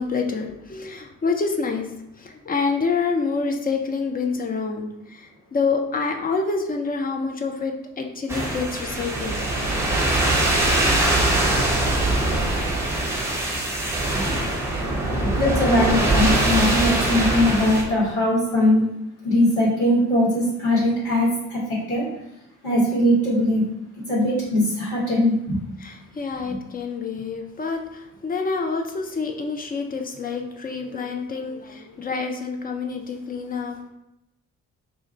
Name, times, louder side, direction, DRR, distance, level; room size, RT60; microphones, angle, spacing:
voice 1, 0.0-1.9 2.2-9.4 11.6-12.3 25.8-33.8, left 4 dB, 20° left, 3 dB, 0.4 m, -27 dB
sound 1, 8.3-17.8, right 1 dB, 5° right, 0.9 m, -22 dB
voice 2, 15.2-18.8 19.2-21.6 21.9-22.0 22.6-23.6 24.1-25.6, left 1 dB, 80° left, -8 dB, 1.3 m, -20 dB
2.6 x 2.4 x 4.1 m, 0.88 s
figure-of-eight pair, 40°, 42 cm